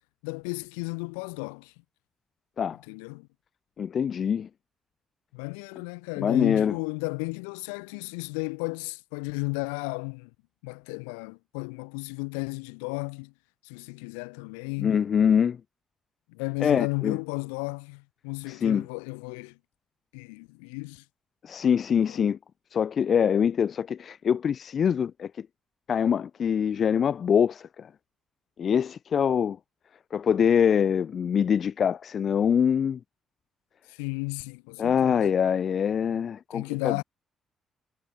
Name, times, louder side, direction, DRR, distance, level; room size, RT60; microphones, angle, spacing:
voice 1, 0.2-1.7 2.9-3.3 5.3-10.3 10.6-13.3 13.6-15.0 16.3-19.6 20.1-21.0 22.0-22.2 33.9-35.3 36.5-37.0, left 36 dB, 90° left, 1.7 m, -34 dB
voice 2, 3.8-4.5 6.2-6.7 14.8-15.6 16.6-17.2 18.5-18.8 21.4-22.4 22.7-25.3 25.9-27.9 28.6-29.6 30.1-33.0 34.8-37.0, left 7 dB, 55° left, 0.4 m, -24 dB
hypercardioid pair, 50°, 0 cm